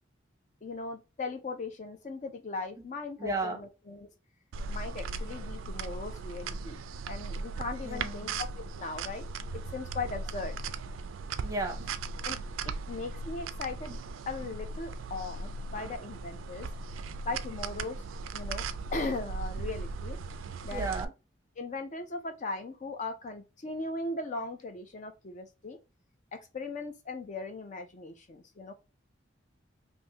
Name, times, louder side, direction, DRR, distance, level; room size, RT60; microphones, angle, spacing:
voice 1, 0.6-4.1 4.7-6.8 7.1-9.3 9.5-10.6 12.2-12.4 12.6-14.0 14.3-16.7 17.3-18.0 18.3-18.7 18.9-20.2 20.6-20.9 21.6-25.8 26.3-28.7, left 3 dB, 40° left, 0.4 m, -38 dB
voice 2, 3.2-3.6 7.8-8.4 11.4-11.8 20.7-21.1, right 2 dB, 15° right, 0.7 m, -33 dB
sound 1, 4.5-21.0, right 4 dB, 90° right, 0.3 m, -38 dB
3.4 x 2.6 x 2.7 m
head